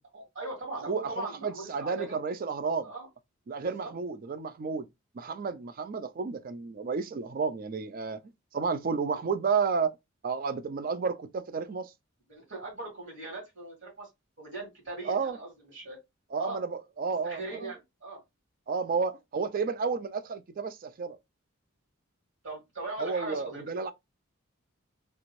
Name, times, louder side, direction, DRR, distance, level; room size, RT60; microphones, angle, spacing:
voice 1, 0.1-2.2 2.8-3.1 3.6-3.9 12.3-14.1 14.4-16.0 16.4-16.6 17.2-18.2 22.4-23.6, right 2 dB, 60° right, 2.3 m, -39 dB
voice 2, 0.9-2.9 3.5-4.9 5.1-8.2 8.5-9.9 10.2-11.9 15.0-15.4 16.3-17.7 18.7-21.2 23.0-23.9, right 5 dB, 40° right, 0.4 m, -31 dB
3.3 x 2.6 x 3.0 m
head